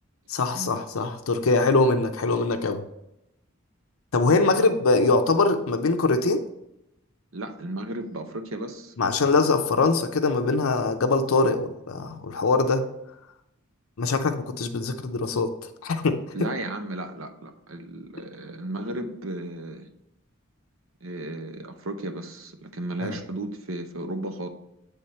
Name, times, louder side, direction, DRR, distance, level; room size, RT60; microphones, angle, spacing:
voice 1, 0.3-2.8 4.1-6.4 9.0-12.9 14.0-15.5 15.8-16.5 23.0-23.2, left 3 dB, 80° left, 6 dB, 0.6 m, -23 dB
voice 2, 7.3-9.0 16.3-19.9 21.0-24.5, right 1 dB, 70° right, 6 dB, 0.8 m, -34 dB
8.5 x 3.6 x 4.3 m, 0.85 s
head